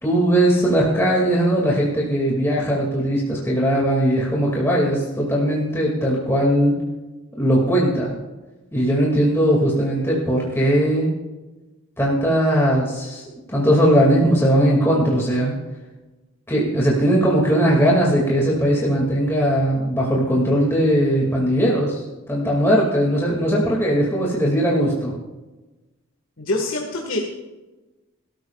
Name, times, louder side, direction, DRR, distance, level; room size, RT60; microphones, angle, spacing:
voice 1, 0.0-6.8 7.4-8.2 8.7-11.1 12.0-13.2 13.5-15.6 16.5-25.1, equal, 10° left, -4 dB, 2.4 m, -19 dB
voice 2, 26.4-27.2, left 2 dB, 70° left, -1 dB, 1.8 m, -25 dB
22.5 x 13.5 x 2.4 m, 1.1 s
head